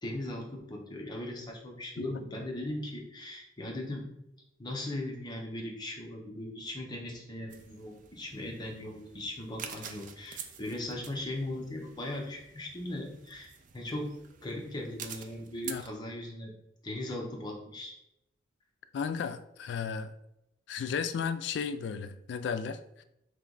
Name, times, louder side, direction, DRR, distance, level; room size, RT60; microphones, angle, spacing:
voice 1, 0.0-4.0 4.6-14.1 14.4-16.5 16.8-17.9, left 1 dB, 25° left, -1 dB, 0.8 m, -38 dB
sound 1, 7.5-15.9, right 8 dB, 45° right, 0.3 m, -48 dB
voice 2, 18.9-20.1 20.7-23.0, left 6 dB, 65° left, 11 dB, 0.3 m, -34 dB
3.3 x 2.9 x 3.9 m, 0.82 s
head